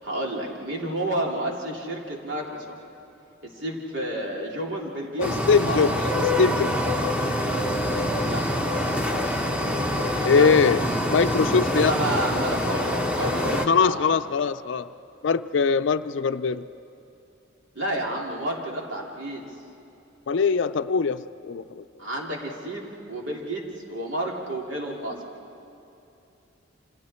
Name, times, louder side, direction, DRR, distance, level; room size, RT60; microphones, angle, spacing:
voice 1, 0.0-2.7 3.4-5.3 5.6-5.8 8.3-8.4 10.3-10.5 11.7-14.1 17.7-19.4 22.0-25.2, right 1 dB, 75° right, -1 dB, 3.3 m, -30 dB
voice 2, 5.2-6.8 10.3-12.0 13.5-14.9 15.2-16.6 20.3-21.8, left 5 dB, 70° left, 11 dB, 0.4 m, -22 dB
sound 1, 5.2-13.7, left 1 dB, 5° right, 1.2 m, -25 dB
28.5 x 26.5 x 4.4 m, 2.8 s
head